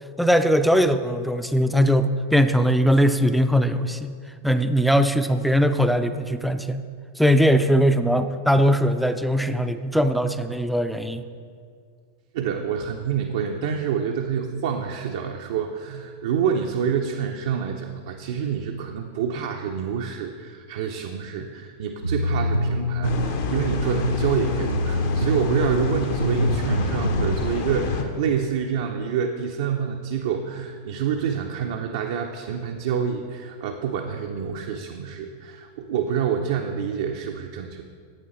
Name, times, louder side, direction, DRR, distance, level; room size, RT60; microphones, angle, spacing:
voice 1, 0.2-4.1 4.4-6.8 7.2-11.2, equal, ahead, 9 dB, 0.4 m, -20 dB
voice 2, 12.3-37.8, right 7 dB, 55° right, 3 dB, 0.5 m, -27 dB
sound 1, 22.0-27.4, equal, 90° left, 0.5 m, -25 dB
sound 2, 23.0-28.0, left 5 dB, 50° left, 0.8 m, -29 dB
10.5 x 8.4 x 3.0 m, 2.1 s
figure-of-eight pair, 90°, 0 cm